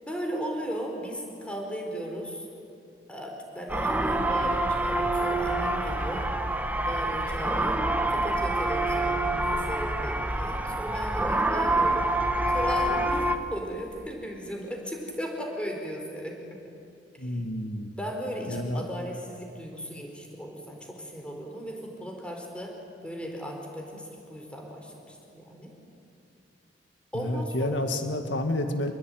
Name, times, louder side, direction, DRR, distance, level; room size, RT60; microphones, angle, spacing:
voice 1, 0.0-2.5 3.1-6.2 6.8-7.8 8.1-12.1 12.5-16.6 17.1-17.3 18.0-25.7 27.1-27.9, equal, 5° left, 1 dB, 4.5 m, -36 dB
sound 1, 3.7-13.4, right 1 dB, 10° right, 1.4 m, -26 dB
voice 2, 17.2-17.9 18.5-18.9 27.1-28.9, left 1 dB, 75° left, 6 dB, 2.0 m, -29 dB
27.0 x 21.5 x 9.4 m, 2.6 s
head